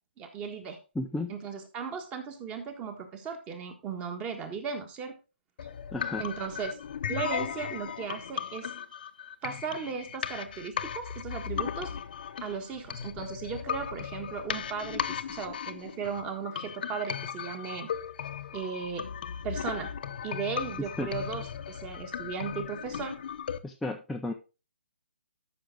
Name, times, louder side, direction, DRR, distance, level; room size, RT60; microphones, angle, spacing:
voice 1, 0.2-0.8 1.3-5.1 6.2-6.7 7.1-8.7 9.4-11.9 12.4-17.9 18.5-19.1 19.4-19.9 20.2-23.2, right 6 dB, 15° right, 7 dB, 1.5 m, -36 dB
voice 2, 1.0-1.3 5.9-6.2 21.0-21.1 23.6-24.3, left 2 dB, ahead, 2 dB, 0.5 m, -33 dB
sound 1, 5.6-23.6, left 8 dB, 50° left, 0.8 m, -36 dB
12.5 x 5.9 x 3.7 m, 0.32 s
hypercardioid pair, 155°, 6 cm